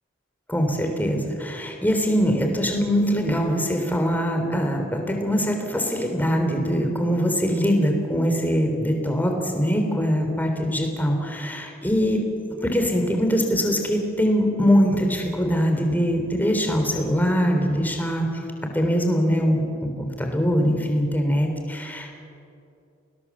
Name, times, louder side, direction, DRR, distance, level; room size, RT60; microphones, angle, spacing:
voice 1, 0.5-12.2 12.6-18.4 18.7-22.1, equal, 10° left, 3 dB, 3.5 m, -22 dB
29.5 x 20.5 x 7.3 m, 2.6 s
head